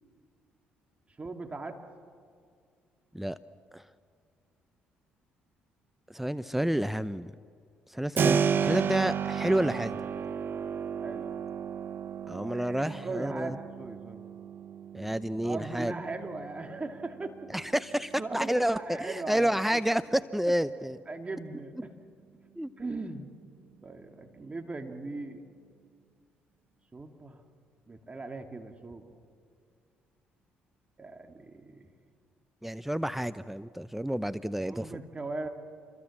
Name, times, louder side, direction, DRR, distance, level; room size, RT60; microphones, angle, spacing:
voice 1, 1.2-1.8 11.0-11.3 12.5-14.2 15.4-17.4 18.2-19.8 21.1-21.9 22.8-23.3 23.8-25.4 26.9-27.4 27.9-29.1 31.0-31.9 34.7-35.5, right 3 dB, 25° right, 5 dB, 2.7 m, -39 dB
voice 2, 6.1-7.3 7.9-10.0 12.3-13.5 14.9-15.9 17.5-21.0 22.6-22.7 32.6-34.9, right 1 dB, 5° right, 13 dB, 0.7 m, -29 dB
Keyboard (musical), 8.2-18.8, right 7 dB, 50° right, 0.9 m, -33 dB
28.0 x 23.0 x 7.4 m, 2.2 s
hypercardioid pair, 50°, 5 cm